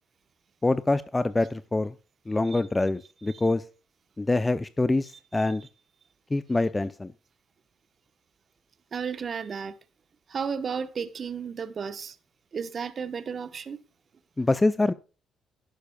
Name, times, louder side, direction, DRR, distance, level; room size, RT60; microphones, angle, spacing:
voice 1, 0.6-1.9 2.3-3.6 4.2-5.6 6.3-7.1 14.4-14.9, left 2 dB, 20° left, 0.6 m, -25 dB
voice 2, 8.9-9.8 10.3-12.2 12.5-13.8, right 6 dB, 50° right, 1.0 m, -33 dB
12.0 x 10.0 x 2.3 m
supercardioid pair, 70°, 0 cm